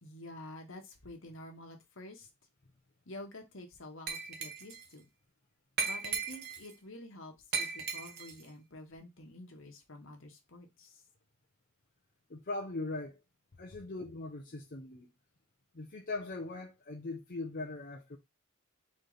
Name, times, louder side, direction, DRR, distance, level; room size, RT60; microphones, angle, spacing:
voice 1, 0.0-2.3 3.0-5.1 5.8-11.0, left 1 dB, 65° left, 1.3 m, -49 dB
Glass, 4.1-4.9 5.8-6.7 7.5-8.4, right 5 dB, 50° right, 0.9 m, -36 dB
voice 2, 12.3-13.2 13.6-15.1 15.7-18.2, left 2 dB, 45° left, 0.7 m, -40 dB
4.1 x 3.3 x 3.9 m
head